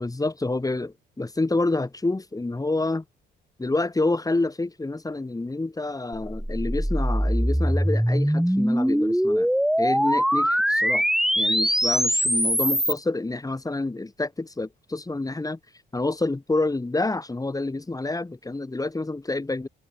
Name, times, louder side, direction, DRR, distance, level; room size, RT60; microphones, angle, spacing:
voice 1, 0.0-3.0 3.6-9.5 9.8-11.0 11.4-15.6 15.9-19.7, left 2 dB, 15° left, 7.3 m, -28 dB
sound 1, 6.2-13.0, equal, ahead, 4.4 m, -22 dB
cardioid pair, 90°, 20 cm